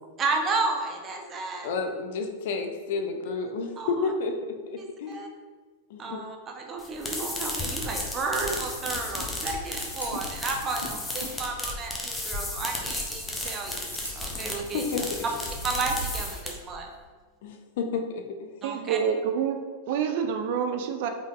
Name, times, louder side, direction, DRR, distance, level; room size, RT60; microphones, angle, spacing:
voice 1, 0.2-1.7 3.4-4.1 4.8-5.3 6.0-13.9 14.2-14.8 15.6-16.9 18.6-19.0, right 3 dB, 25° right, 2 dB, 0.7 m, -32 dB
voice 2, 1.6-5.1 5.9-6.2 14.3-14.5 14.7-15.2 17.4-18.5, left 4 dB, 55° left, 5 dB, 0.5 m, -31 dB
sound 1, 6.8-16.8, left 2 dB, 10° left, 0.8 m, -34 dB
Scissors, 8.1-16.2, right 1 dB, 85° right, 1.0 m, -42 dB
voice 3, 18.6-21.1, right 7 dB, 50° right, 6 dB, 0.4 m, -27 dB
5.1 x 4.0 x 2.5 m, 1.5 s
figure-of-eight pair, 90°, 0 cm